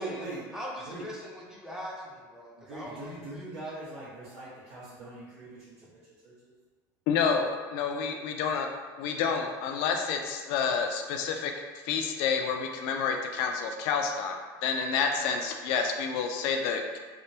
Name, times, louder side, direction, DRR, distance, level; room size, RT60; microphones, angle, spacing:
voice 1, 0.0-0.5 0.8-1.1 2.6-6.5, right 2 dB, 80° right, -14 dB, 1.2 m, -41 dB
voice 2, 0.5-3.7, equal, 5° right, -4 dB, 0.5 m, -42 dB
voice 3, 7.1-8.7 9.0-11.5 11.8-17.0, left 6 dB, 70° left, 4 dB, 0.4 m, -29 dB
3.3 x 2.1 x 2.7 m, 1.4 s
cardioid pair, 140°, 9 cm